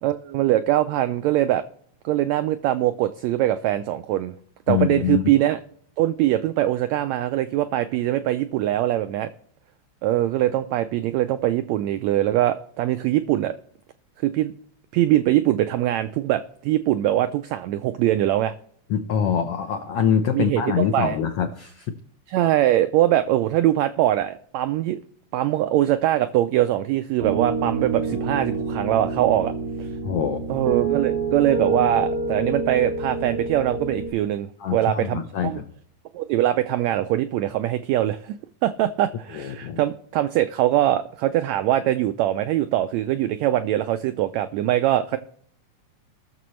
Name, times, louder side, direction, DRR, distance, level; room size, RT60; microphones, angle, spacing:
voice 1, 0.0-1.6 2.0-4.3 4.7-5.6 6.0-9.3 10.0-13.5 14.2-14.5 14.9-18.5 20.3-21.2 22.3-25.0 25.3-29.5 29.8-29.9 30.5-35.6 36.1-38.3 38.6-45.2, right 13 dB, 85° right, 10 dB, 1.6 m, -22 dB
voice 2, 4.7-5.3 18.9-21.9 30.0-30.7 34.6-35.6 39.3-39.8, left 8 dB, 80° left, 7 dB, 1.3 m, -24 dB
Piano, 27.2-34.1, right 3 dB, 60° right, 3.7 m, -27 dB
20.5 x 6.8 x 3.1 m, 0.64 s
omnidirectional pair, 3.7 m